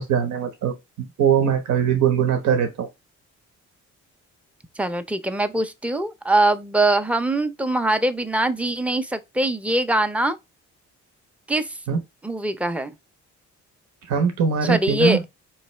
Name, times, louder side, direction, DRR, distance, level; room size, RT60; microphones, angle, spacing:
voice 1, 0.0-2.9 11.9-12.0 14.1-15.2, right 7 dB, 70° right, 1.0 m, -21 dB
voice 2, 4.8-10.4 11.5-11.7 12.2-12.9 14.6-15.2, right 1 dB, 5° right, 0.5 m, -22 dB
3.9 x 3.1 x 3.1 m
cardioid pair, 90°, 30 cm